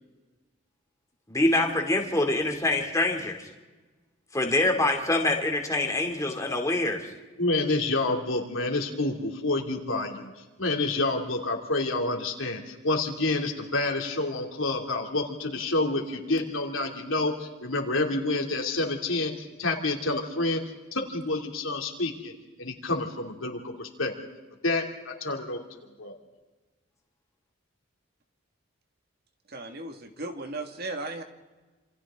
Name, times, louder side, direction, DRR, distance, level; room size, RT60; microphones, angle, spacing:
voice 1, 1.3-3.5 4.3-7.1, left 2 dB, 15° left, 2 dB, 2.8 m, -25 dB
voice 2, 7.4-10.3 10.6-20.6 20.9-22.3 22.6-24.1 24.6-25.6 26.0-26.1, left 2 dB, 80° left, 3 dB, 2.8 m, -28 dB
voice 3, 29.5-31.2, right 2 dB, 50° right, 5 dB, 2.0 m, -36 dB
27.5 x 27.5 x 3.8 m, 1.2 s
head